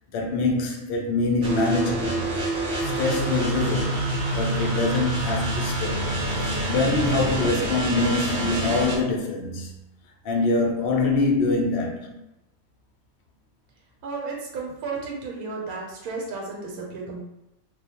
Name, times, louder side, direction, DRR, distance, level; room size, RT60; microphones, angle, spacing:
voice 1, 0.1-2.3 2.8-4.1 4.4-6.1 6.7-9.7 10.2-12.2, left 3 dB, 70° left, 0.5 m, -24 dB
sound 1, 1.4-9.0, right 1 dB, 55° right, 0.7 m, -26 dB
voice 2, 14.0-17.2, right 4 dB, 85° right, 1.1 m, -33 dB
2.3 x 2.1 x 2.7 m
omnidirectional pair, 1.5 m